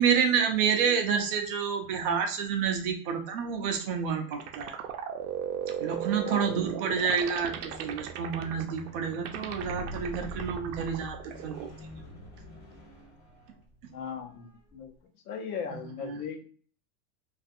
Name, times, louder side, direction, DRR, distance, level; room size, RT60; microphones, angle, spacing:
voice 1, 0.0-4.8 5.8-11.5 16.0-16.2, right 7 dB, 40° right, 5 dB, 0.4 m, -28 dB
sound 1, 3.6-11.7, right 9 dB, 85° right, 0.6 m, -37 dB
voice 2, 6.3-6.7 13.9-14.9 15.3-16.4, left 6 dB, 80° left, 3 dB, 0.8 m, -38 dB
Squeak, 7.5-13.8 14.6-14.7, equal, 20° left, 0.5 m, -45 dB
2.4 x 2.4 x 2.5 m, 0.43 s
supercardioid pair, 170°, 44 cm